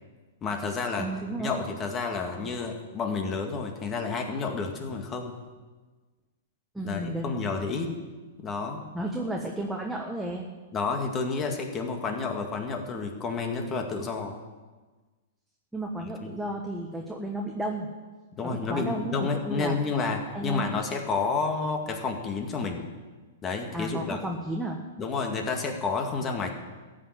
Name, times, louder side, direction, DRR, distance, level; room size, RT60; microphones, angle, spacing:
voice 1, 0.4-1.1 1.4-5.4 6.8-7.9 8.4-8.8 10.7-14.4 16.2-16.4 18.4-22.9 23.4-24.2 25.0-26.5, left 4 dB, 25° left, 3 dB, 2.1 m, -30 dB
voice 2, 1.0-1.5 6.7-7.3 8.9-10.5 15.7-17.9 18.4-19.7 20.3-20.8 23.7-24.8, right 1 dB, 5° right, -1 dB, 1.3 m, -33 dB
14.5 x 6.7 x 8.8 m, 1.3 s
hypercardioid pair, 130°, 0 cm